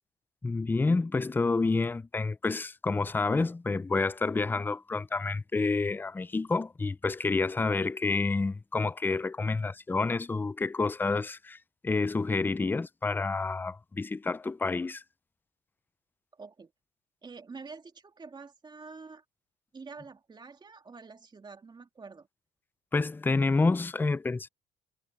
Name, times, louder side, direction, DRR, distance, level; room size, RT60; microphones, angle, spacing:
voice 1, 0.4-11.6 11.8-15.0 22.9-24.5, left 3 dB, 10° left, 0.4 m, -29 dB
voice 2, 16.3-16.7 17.2-19.2 19.7-22.3, right 4 dB, 25° right, 2.4 m, -47 dB
cardioid pair, 110°, 17 cm